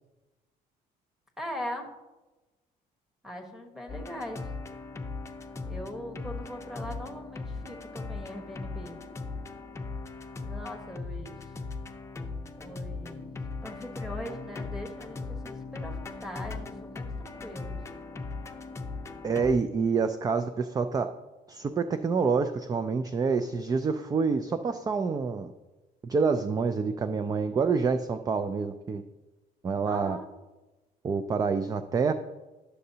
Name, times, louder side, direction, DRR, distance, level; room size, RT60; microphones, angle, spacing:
voice 1, 1.4-1.9 3.2-4.5 5.7-9.0 10.4-11.5 12.6-17.8 29.8-30.3, equal, ahead, 1 dB, 1.3 m, -41 dB
sound 1, 3.9-19.5, left 3 dB, 15° left, 0.7 m, -38 dB
voice 2, 19.2-21.1 21.5-25.5 26.0-29.0 29.6-30.2 31.0-32.1, right 5 dB, 20° right, 10 dB, 0.3 m, -27 dB
11.0 x 6.6 x 2.8 m, 1.1 s
cardioid pair, 110°, 17 cm